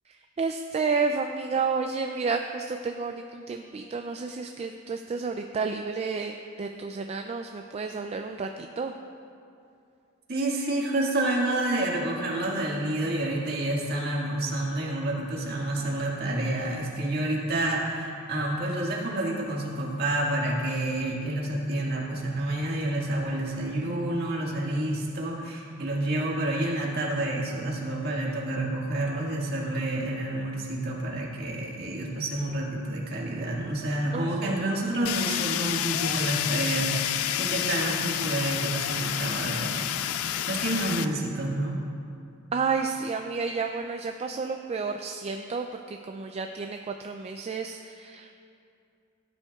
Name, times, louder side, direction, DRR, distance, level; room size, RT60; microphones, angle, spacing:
voice 1, 0.1-8.9 34.1-35.0 42.5-48.3, right 4 dB, 30° right, 5 dB, 0.3 m, -31 dB
voice 2, 10.3-41.8, right 1 dB, 50° right, -3 dB, 1.8 m, -29 dB
Fire, 35.1-41.1, left 11 dB, 85° left, 0.4 m, -29 dB
16.0 x 9.7 x 2.4 m, 2.5 s
head